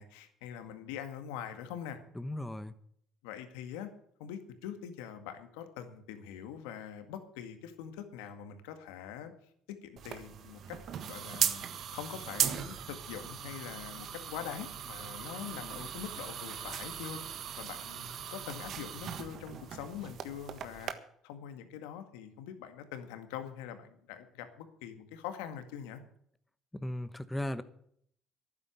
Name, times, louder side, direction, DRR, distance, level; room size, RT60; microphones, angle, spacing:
voice 1, 0.0-2.0 3.2-3.9 4.2-9.3 9.7-10.8 11.1-11.7 11.9-20.9 21.2-26.0, left 9 dB, 90° left, 8 dB, 1.9 m, -43 dB
voice 2, 2.1-2.7 26.7-27.6, left 1 dB, 10° left, 12 dB, 1.1 m, -36 dB
sound 1, 10.0-20.9, right 9 dB, 60° right, 1.5 m, -38 dB
12.0 x 9.6 x 8.3 m, 0.66 s
supercardioid pair, 80°, 0 cm